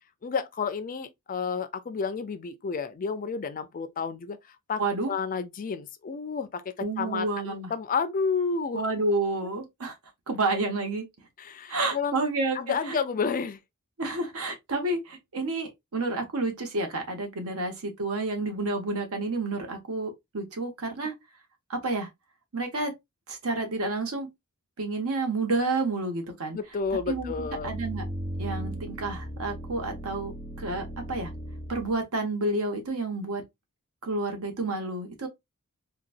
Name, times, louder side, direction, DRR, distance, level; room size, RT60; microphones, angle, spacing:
voice 1, 0.2-4.4 4.7-8.8 11.4-13.6 17.5-17.6 26.5-27.7, left 5 dB, 40° left, 0.4 m, -31 dB
voice 2, 4.8-5.1 6.8-7.7 8.7-9.9 10.3-11.1 11.7-13.0 14.0-21.1 21.7-22.1 22.5-22.9 23.3-24.3 24.8-26.6 27.1-28.1 28.4-31.3 31.7-33.4 34.0-35.3, right 2 dB, 70° right, 1.0 m, -30 dB
sound 1, 26.9-31.9, right 1 dB, 30° right, 1.7 m, -37 dB
3.9 x 2.3 x 2.5 m
head